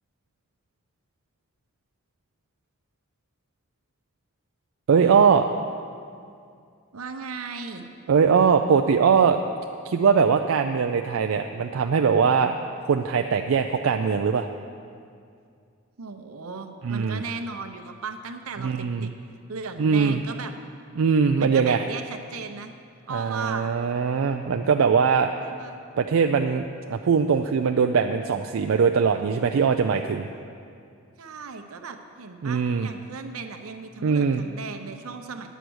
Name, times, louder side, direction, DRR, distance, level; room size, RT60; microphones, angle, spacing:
voice 1, 4.9-5.5 8.1-9.4 9.9-12.5 12.9-14.5 16.8-17.2 18.6-19.1 19.8-20.2 21.0-21.8 23.1-25.3 26.0-30.3 32.4-32.9 34.0-34.5, right 6 dB, 70° right, 5 dB, 0.4 m, -21 dB
voice 2, 6.9-7.9 16.0-19.1 19.5-20.5 21.4-22.7 23.1-23.7 25.4-25.8 31.2-35.5, right 4 dB, 85° right, 6 dB, 0.8 m, -36 dB
10.0 x 8.1 x 6.2 m, 2.3 s
head